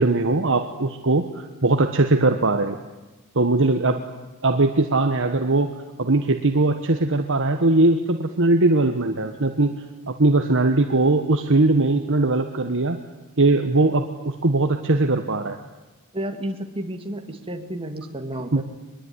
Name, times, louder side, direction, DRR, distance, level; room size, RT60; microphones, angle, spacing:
voice 1, 0.0-2.8 3.3-4.0 4.4-5.7 6.0-9.7 10.1-13.0 13.4-15.6 18.5-18.6, right 2 dB, 60° right, 6 dB, 1.5 m, -20 dB
voice 2, 16.1-18.6, right 1 dB, 25° right, 5 dB, 2.5 m, -31 dB
23.5 x 22.0 x 9.9 m, 1.1 s
head